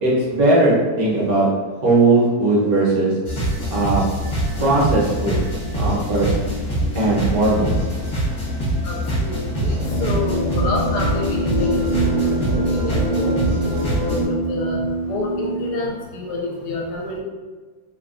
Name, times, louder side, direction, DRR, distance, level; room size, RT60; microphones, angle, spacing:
voice 1, 0.0-1.5 1.8-3.1 3.7-4.0 4.6-5.4 5.7-6.3 6.9-7.8, right 2 dB, 65° right, -6 dB, 1.2 m, -18 dB
sound 1, 3.2-14.3, equal, 40° left, 0.9 m, -24 dB
voice 2, 8.8-11.8 12.2-13.4 13.9-17.2, left 2 dB, 75° left, -1 dB, 1.1 m, -28 dB
sound 2, 9.5-15.7, right 1 dB, 85° right, 1.3 m, -24 dB
3.1 x 2.3 x 2.4 m, 1.4 s
omnidirectional pair, 1.9 m